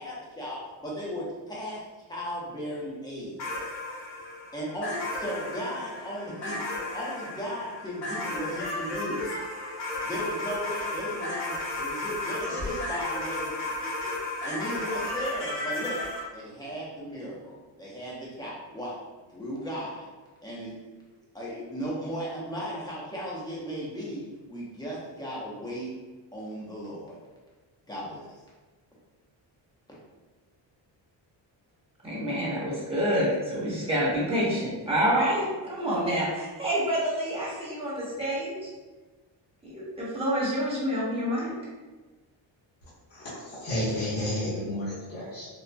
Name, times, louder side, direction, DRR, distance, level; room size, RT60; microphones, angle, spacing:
voice 1, 0.0-1.8 2.1-3.4 4.5-6.7 6.9-9.2 10.0-13.6 13.8-14.1 14.4-16.0 16.3-19.0 19.3-20.1 20.4-20.8 21.3-25.9 26.3-27.2 27.9-28.4, equal, 10° left, -6 dB, 0.9 m, -36 dB
sound 1, 3.4-16.2, left 2 dB, 60° left, 1.4 m, -34 dB
voice 2, 32.0-38.7 39.6-41.5, equal, 10° right, -7 dB, 1.1 m, -27 dB
voice 3, 43.1-45.5, left 1 dB, 30° left, -10 dB, 1.2 m, -31 dB
4.0 x 2.3 x 2.3 m, 1.3 s
cardioid pair, 120°, 46 cm